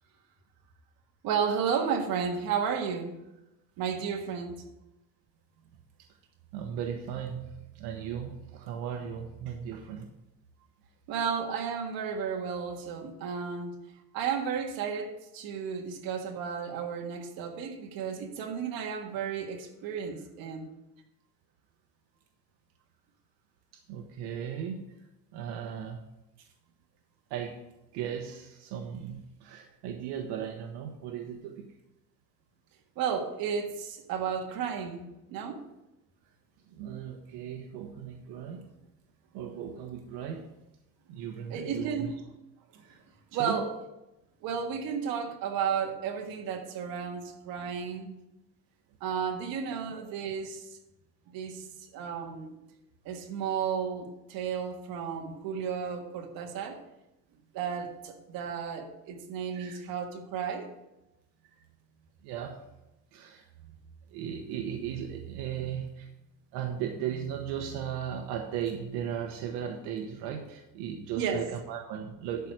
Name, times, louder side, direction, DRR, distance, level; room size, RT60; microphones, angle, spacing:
voice 1, 1.2-3.2 3.8-4.6 11.1-13.7 14.1-20.7 33.0-35.6 41.5-42.2 43.3-43.7 44.4-48.1 49.0-50.7 51.3-51.6 51.9-52.5 53.0-56.8 57.5-60.7 71.1-71.4, right 7 dB, 60° right, 2 dB, 1.7 m, -33 dB
voice 2, 6.5-10.1 23.7-24.9 25.3-26.0 26.4-26.5 27.3-27.6 27.9-31.8 36.7-38.7 39.3-40.5 41.1-42.1 42.8-43.0 43.3-43.6 49.9-50.1 59.5-59.8 61.5-61.6 62.2-62.6 63.1-63.8 64.1-66.1 66.5-72.5, right 8 dB, 85° right, 4 dB, 1.1 m, -37 dB
11.5 x 4.8 x 6.4 m, 0.94 s
cardioid pair, 165°, 39 cm